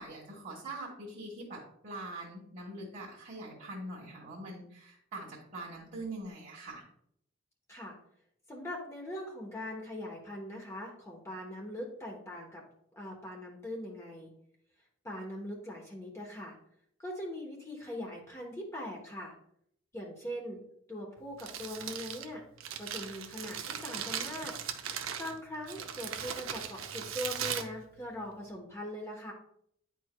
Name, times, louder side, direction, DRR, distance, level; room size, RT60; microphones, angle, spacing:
voice 1, 0.0-6.8, right 2 dB, 40° right, -5 dB, 1.5 m, -43 dB
voice 2, 8.5-12.6 12.9-14.3 15.0-16.6 17.0-19.3 19.9-20.6 20.9-22.4 22.8-24.5 25.2-29.3, left 1 dB, 15° left, -1 dB, 1.0 m, -41 dB
Crumpling crinkling, 21.2-28.5, right 8 dB, 85° right, 0.7 m, -39 dB
9.9 x 4.7 x 2.2 m, 0.69 s
head